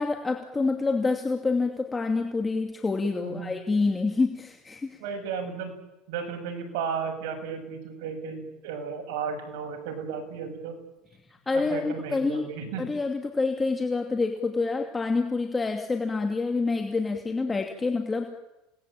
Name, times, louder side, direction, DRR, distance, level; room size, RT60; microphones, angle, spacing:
voice 1, 0.0-5.0 11.5-12.5 12.8-18.3, left 3 dB, 15° left, 4 dB, 2.4 m, -27 dB
voice 2, 3.2-3.5 5.0-5.8 6.1-10.7 11.5-12.9, right 6 dB, 75° right, 4 dB, 7.3 m, -34 dB
28.5 x 19.5 x 9.0 m, 0.97 s
supercardioid pair, 130°, 0 cm